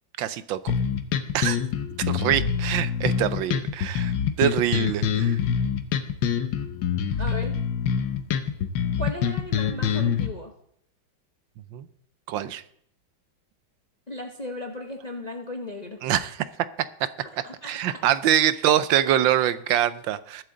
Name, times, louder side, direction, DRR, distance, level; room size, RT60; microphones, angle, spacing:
voice 1, 0.2-0.6 1.3-1.6 2.1-5.4 11.7-11.9 12.3-12.6 16.0-16.5 17.0-17.1 17.6-20.4, right 11 dB, 80° right, 14 dB, 1.4 m, -24 dB
sound 1, 0.7-10.3, left 7 dB, 75° left, 1.6 m, -25 dB
voice 2, 7.2-7.6 9.0-10.5 14.1-16.0 17.2-18.0, left 1 dB, 35° left, 4 dB, 0.7 m, -36 dB
20.5 x 7.6 x 3.8 m, 0.66 s
omnidirectional pair, 2.1 m